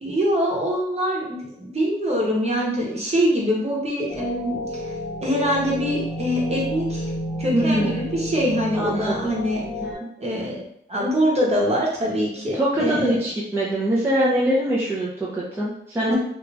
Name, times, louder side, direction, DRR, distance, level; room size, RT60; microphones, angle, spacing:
voice 1, 0.0-4.8 5.2-7.1 7.4-9.6 10.2-13.2 16.1-16.2, equal, 35° right, -3 dB, 1.2 m, -24 dB
sound 1, 4.1-9.9, equal, 65° left, 1.0 m, -31 dB
voice 2, 7.5-8.0 8.7-9.3 12.5-16.1, right 1 dB, 10° right, -7 dB, 0.7 m, -23 dB
2.8 x 2.4 x 3.4 m, 0.73 s
cardioid pair, 90°, 20 cm